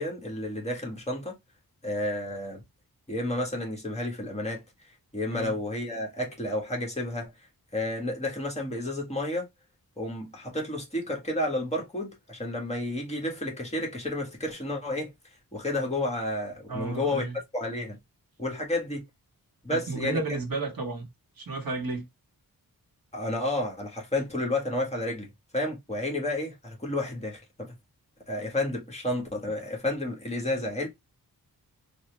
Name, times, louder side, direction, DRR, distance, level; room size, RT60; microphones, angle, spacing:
voice 1, 0.0-1.4 1.8-2.6 3.1-4.6 5.1-7.3 7.7-9.5 10.0-15.1 15.5-17.2 17.5-18.0 18.4-19.0 19.6-20.2 23.1-27.7 28.3-30.9, left 1 dB, 20° left, 1.7 m, -31 dB
voice 2, 16.7-17.4 19.7-21.1 21.4-22.1, right 3 dB, 65° right, 1.2 m, -32 dB
4.1 x 2.4 x 3.2 m
wide cardioid pair, 90°, 36 cm